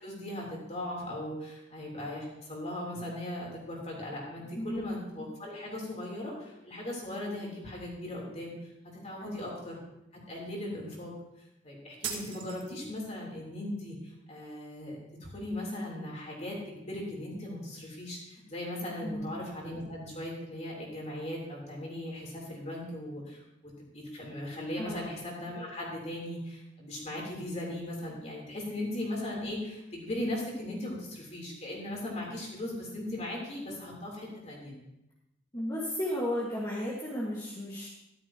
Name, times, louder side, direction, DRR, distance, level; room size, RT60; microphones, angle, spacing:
voice 1, 0.0-9.8 10.3-11.2 11.6-34.8, left 1 dB, 40° left, -3 dB, 3.7 m, -38 dB
voice 2, 4.5-4.9 9.2-9.4 19.0-19.3 24.8-25.0 29.4-29.5 35.5-37.9, left 1 dB, 20° left, -6 dB, 1.8 m, -34 dB
sound 1, 12.0-13.1, right 7 dB, 80° right, 1.8 m, -39 dB
13.5 x 12.5 x 3.0 m, 0.89 s
head